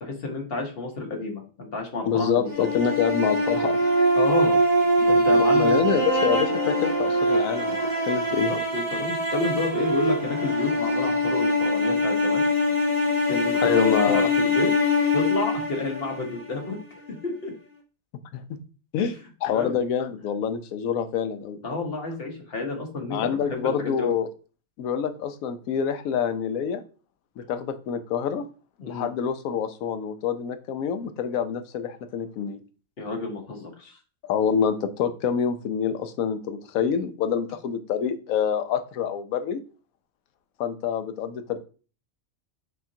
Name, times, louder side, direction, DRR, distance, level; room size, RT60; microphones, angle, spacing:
voice 1, 0.0-2.6 4.1-4.6 5.1-5.9 8.5-12.5 13.3-14.7 15.1-16.8 17.2-17.5 19.5-19.8 21.6-24.1 28.8-29.1 33.0-34.0, left 3 dB, 50° left, 2 dB, 1.2 m, -30 dB
voice 2, 2.1-3.8 5.0-5.1 5.3-7.8 8.0-8.5 13.5-14.3 18.3-18.4 18.9-19.1 19.4-21.6 23.1-24.3 24.8-26.8 27.4-28.4 28.9-32.6 34.3-39.6 40.6-41.6, left 7 dB, 85° left, 9 dB, 1.0 m, -26 dB
sound 1, 2.5-16.6, equal, 20° right, 0.8 m, -23 dB
5.7 x 2.9 x 2.7 m, 0.37 s
omnidirectional pair, 1.4 m